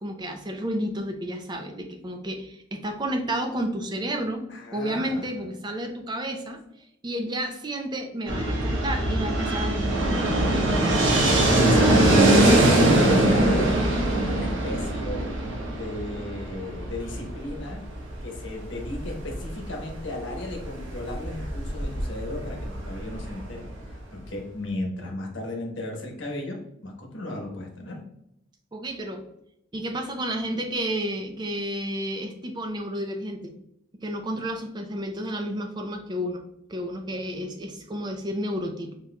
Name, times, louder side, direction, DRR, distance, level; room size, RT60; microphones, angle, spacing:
voice 1, 0.0-4.5 4.7-6.6 7.0-10.1 28.7-29.3 29.7-33.5 34.0-36.4 36.7-38.9, right 1 dB, 20° right, 4 dB, 0.5 m, -31 dB
voice 2, 4.5-5.5 11.5-12.2 12.7-13.8 14.1-15.3 15.7-17.8 18.2-22.6 22.8-28.0, left 1 dB, 60° left, 0 dB, 1.1 m, -34 dB
Fixed-wing aircraft airplane, 8.3-24.0, right 1 dB, 65° right, 0.9 m, -23 dB
4.4 x 3.8 x 2.3 m, 0.78 s
head